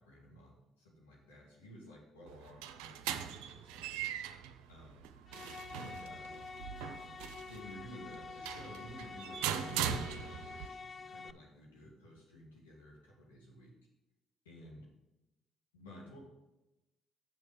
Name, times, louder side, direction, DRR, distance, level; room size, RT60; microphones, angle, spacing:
voice 1, 0.0-4.1 4.7-5.0 5.7-6.3 7.5-13.8 14.4-14.9 15.7-16.2, equal, 90° left, -4 dB, 2.1 m, -54 dB
sound 1, 2.3-10.7, right 9 dB, 80° right, 0.5 m, -41 dB
sound 2, 5.3-11.3, left 4 dB, 40° left, 0.4 m, -48 dB
7.1 x 6.4 x 5.0 m, 0.99 s
hypercardioid pair, 50°, 0 cm